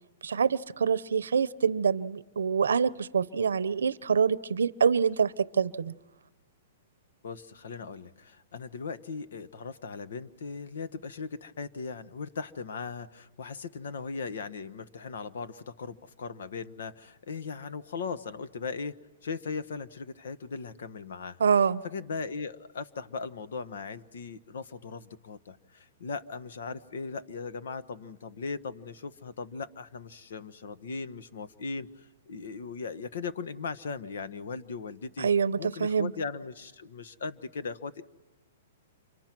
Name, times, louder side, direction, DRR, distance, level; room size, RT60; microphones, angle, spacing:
voice 1, 0.2-5.9 21.4-21.8 35.2-36.1, right 6 dB, 90° right, 17 dB, 0.7 m, -26 dB
voice 2, 7.2-19.0 19.2-21.4 21.8-35.3 35.6-38.0, left 4 dB, 75° left, 12 dB, 1.3 m, -38 dB
29.0 x 25.5 x 6.1 m, 1.1 s
hypercardioid pair, 140°, 0 cm